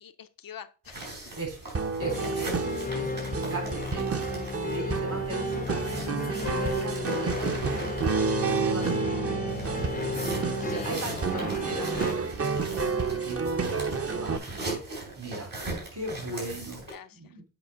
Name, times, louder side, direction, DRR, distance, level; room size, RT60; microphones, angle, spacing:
voice 1, 0.0-1.2 10.6-11.0 16.3-16.4 16.9-17.3, left 8 dB, 90° left, 10 dB, 0.6 m, -46 dB
sound 1, 0.8-9.0 9.5-16.9, right 2 dB, 85° right, 3.9 m, -40 dB
sound 2, 1.7-14.4, right 5 dB, 45° right, 0.7 m, -30 dB
sound 3, 2.0-12.1, left 5 dB, 25° left, 0.4 m, -34 dB
voice 2, 2.0-2.6 2.9-3.2 3.5-4.2 4.7-8.0 8.6-10.2 10.7-15.5 15.9-17.5, right 2 dB, 70° right, 2 dB, 4.1 m, -38 dB
8.0 x 5.0 x 3.7 m, 0.36 s
cardioid pair, 55°, 33 cm